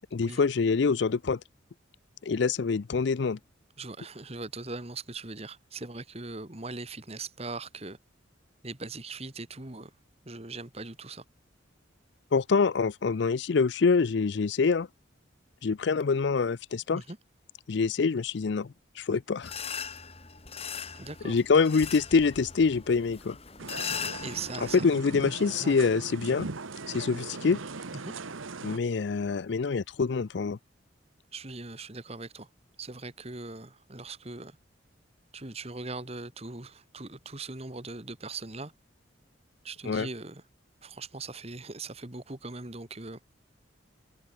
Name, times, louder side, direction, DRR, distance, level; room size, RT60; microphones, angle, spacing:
voice 1, 0.1-1.4 2.2-3.4 12.3-14.9 15.6-17.0 17.7-19.5 21.2-23.4 24.8-26.5 26.9-27.6 28.6-30.6 39.9-40.1, left 4 dB, 60° left, 0.5 m, -25 dB
voice 2, 3.8-8.0 8.6-9.9 10.2-11.2 16.9-17.2 20.9-21.4 24.2-24.8 25.6-25.8 27.9-28.1 31.3-32.5 32.8-34.6 35.3-38.7 39.6-40.4 40.8-43.2, right 3 dB, 30° right, 1.7 m, -40 dB
sound 1, 19.4-24.8, left 6 dB, 30° left, 2.4 m, -39 dB
sound 2, 23.6-28.8, right 3 dB, 85° right, 1.3 m, -39 dB
head